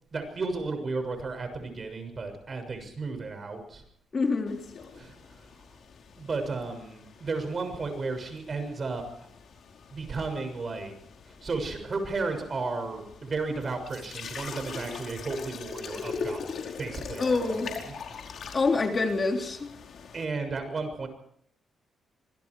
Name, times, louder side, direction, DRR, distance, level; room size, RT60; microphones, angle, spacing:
voice 1, 0.1-3.8 4.9-5.4 6.2-9.3 9.9-10.9 11.3-17.9 20.1-21.1, right 3 dB, 45° right, 7 dB, 6.7 m, -34 dB
voice 2, 4.1-4.6 17.2-17.7 18.5-19.7, left 3 dB, 40° left, 3 dB, 3.4 m, -26 dB
sound 1, 4.5-20.2, left 5 dB, 65° left, 4.7 m, -42 dB
26.0 x 21.5 x 4.9 m, 0.67 s
cardioid pair, 75°, 0 cm